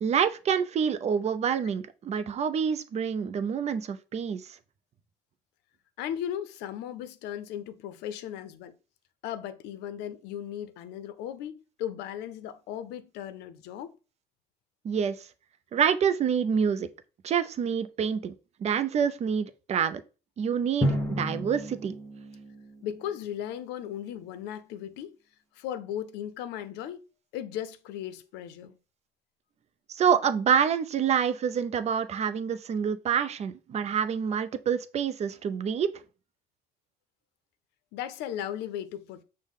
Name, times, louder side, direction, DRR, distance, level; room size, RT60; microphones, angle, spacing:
voice 1, 0.0-4.4 14.8-15.2 15.7-16.9 17.2-18.3 18.6-20.0 20.4-21.9 30.0-35.9, right 7 dB, 40° right, 0.4 m, -27 dB
voice 2, 6.0-8.8 9.2-13.9 22.8-25.1 25.5-27.0 27.3-28.8 37.9-39.2, left 10 dB, 90° left, 0.5 m, -36 dB
Drum, 20.8-23.5, equal, 15° left, 0.8 m, -32 dB
6.3 x 2.1 x 3.6 m
cardioid pair, 110°, 17 cm